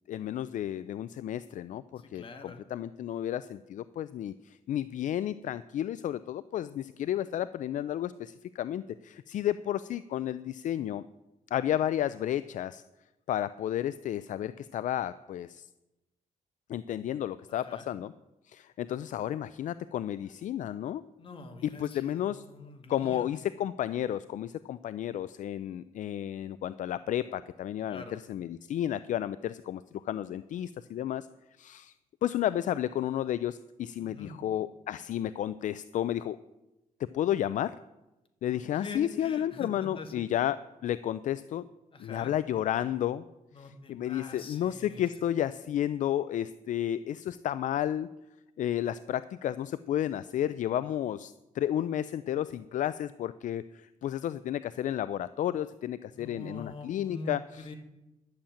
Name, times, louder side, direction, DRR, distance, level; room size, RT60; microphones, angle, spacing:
voice 1, 0.1-11.0 11.5-12.8 13.3-15.7 16.7-18.1 18.5-21.0 21.6-22.4 22.9-31.3 31.6-31.9 32.2-36.4 37.0-37.8 38.4-41.7 42.0-43.2 43.6-48.1 48.6-57.7, left 11 dB, 65° left, 15 dB, 0.4 m, -32 dB
voice 2, 2.1-2.6 17.5-17.9 21.2-23.3 27.9-28.2 34.0-34.4 38.7-40.3 41.9-42.4 43.5-45.0 56.1-57.8, left 3 dB, 40° left, 4 dB, 2.1 m, -44 dB
11.5 x 7.2 x 8.7 m, 0.97 s
cardioid pair, 130°, 14 cm